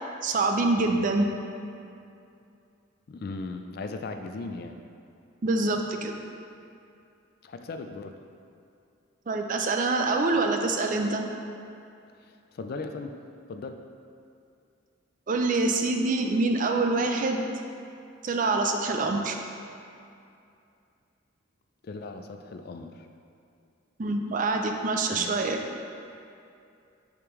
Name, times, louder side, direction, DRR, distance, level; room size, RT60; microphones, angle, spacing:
voice 1, 0.2-1.3 5.4-6.2 9.3-11.2 15.3-17.5 18.2-19.4 24.0-25.6, right 3 dB, 40° right, 4 dB, 0.4 m, -25 dB
voice 2, 3.1-4.8 7.4-8.1 12.2-13.1 13.5-13.8 21.8-23.1 25.1-25.4, left 3 dB, 50° left, 6 dB, 0.3 m, -37 dB
6.7 x 5.2 x 3.1 m, 2.5 s
head